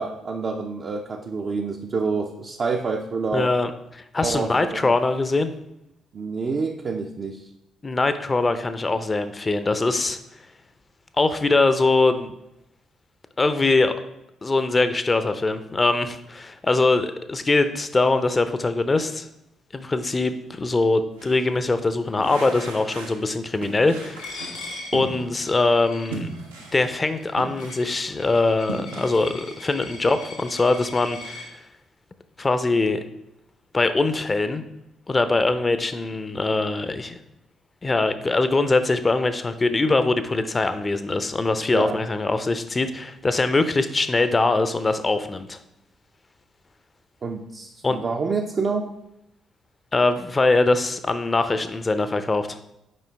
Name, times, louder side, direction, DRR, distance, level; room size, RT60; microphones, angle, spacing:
voice 1, 0.0-3.5 4.2-4.9 6.1-7.5 41.7-42.0 47.2-48.9, right 4 dB, 45° right, 1 dB, 0.6 m, -27 dB
voice 2, 3.3-5.5 7.8-10.2 11.2-12.3 13.4-13.9 14.4-19.3 19.7-24.4 24.9-26.3 26.7-31.6 32.4-33.0 33.7-34.6 35.1-37.2 37.8-45.6 47.8-48.0 49.9-52.6, left 3 dB, 30° left, 10 dB, 0.6 m, -22 dB
sound 1, 21.1-21.5 22.2-23.3 23.6-25.6 26.1-28.0 28.4-29.7, right 3 dB, 85° right, 0.7 m, -37 dB
Coin (dropping), 24.2-31.5, left 3 dB, 75° left, 1.7 m, -41 dB
7.5 x 5.1 x 3.4 m, 0.86 s
figure-of-eight pair, 45°, 0 cm